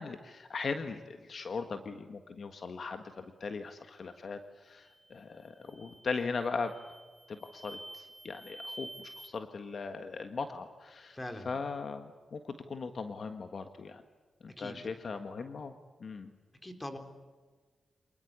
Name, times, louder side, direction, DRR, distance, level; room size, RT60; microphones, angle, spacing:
voice 1, 0.0-6.7 7.3-11.2 11.4-14.0 14.4-15.7 16.0-16.3, left 4 dB, 55° left, 7 dB, 1.6 m, -39 dB
sound 1, 4.8-5.1 5.6-6.1 6.6-9.3, right 1 dB, ahead, 2.9 m, -49 dB
voice 2, 11.1-11.5 14.6-14.8 16.6-17.0, left 1 dB, 20° left, 6 dB, 3.7 m, -41 dB
27.0 x 20.0 x 8.2 m, 1.4 s
cardioid pair, 95°, 0 cm